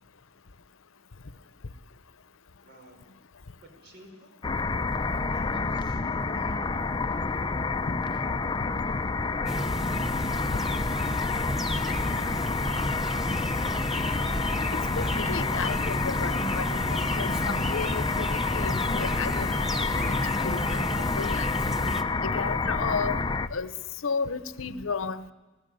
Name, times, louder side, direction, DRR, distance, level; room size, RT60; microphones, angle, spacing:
voice 1, 2.6-3.0 3.6-4.3 5.1-6.6 7.1-7.7 8.4-10.3 11.0-13.9, equal, 60° right, 3 dB, 5.0 m, -54 dB
sound 1, 4.4-23.5, left 3 dB, 25° left, 0.6 m, -29 dB
sound 2, 9.5-22.0, equal, ahead, 1.0 m, -33 dB
sound 3, 14.0-20.6, right 1 dB, 35° right, 3.2 m, -50 dB
voice 2, 14.7-19.5 19.8-20.9 21.2-21.5 22.2-23.2 23.5-23.7 24.0-25.2, left 5 dB, 80° left, 14 dB, 0.8 m, -33 dB
21.0 x 16.5 x 9.2 m, 1.3 s
head